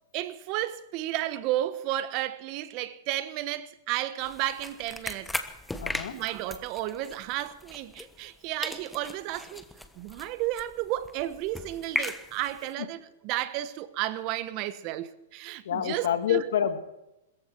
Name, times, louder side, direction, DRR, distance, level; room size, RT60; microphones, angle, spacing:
voice 1, 0.1-5.3 6.1-9.6 10.0-16.4, right 14 dB, 45° right, 1.2 m, -32 dB
sound 1, 4.2-8.4 8.6-12.7, left 2 dB, 5° left, 1.2 m, -38 dB
voice 2, 5.8-6.1 15.7-16.8, left 9 dB, 75° left, 2.0 m, -27 dB
21.5 x 14.5 x 4.6 m
hypercardioid pair, 130°, 0 cm